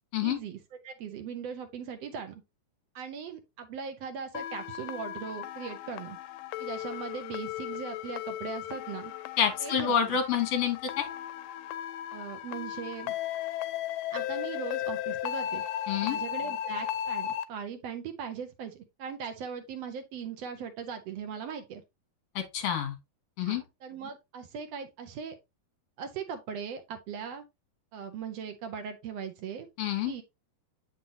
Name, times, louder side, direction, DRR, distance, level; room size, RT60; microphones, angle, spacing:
voice 1, 0.2-2.4 2.9-6.2 6.6-9.1 9.6-10.1 12.1-13.1 14.1-15.6 16.0-21.8 23.4-25.4 26.0-27.4 27.9-29.7 30.1-30.2, right 7 dB, 70° right, 1.7 m, -39 dB
sound 1, 4.3-17.4, left 11 dB, 85° left, 2.2 m, -36 dB
voice 2, 9.4-11.1 15.9-16.2 22.3-23.0 23.4-23.6 29.8-30.1, left 8 dB, 55° left, 2.5 m, -28 dB
7.5 x 5.6 x 2.8 m
omnidirectional pair, 3.7 m